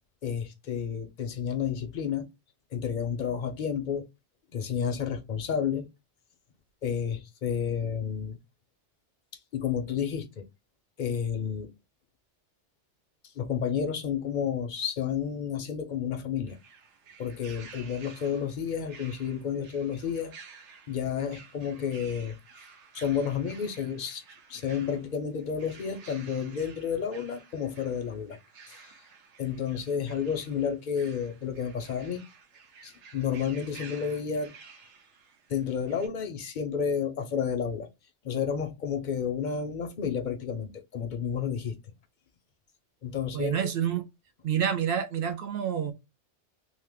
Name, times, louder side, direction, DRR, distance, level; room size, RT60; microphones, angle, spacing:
voice 1, 0.2-2.3 2.7-4.1 4.5-5.9 6.8-8.4 9.5-10.4 11.0-11.7 13.4-16.6 17.2-20.3 20.9-22.4 22.9-24.2 24.5-28.4 28.7-28.9 29.4-32.2 32.8-34.5 35.5-37.9 38.2-41.7 43.0-43.7, left 7 dB, 55° left, 0.6 m, -31 dB
sound 1, 16.5-36.1, right 5 dB, 75° right, 1.0 m, -52 dB
voice 2, 43.3-44.0 44.4-45.9, right 8 dB, 60° right, 0.7 m, -28 dB
2.8 x 2.1 x 3.4 m
omnidirectional pair, 1.2 m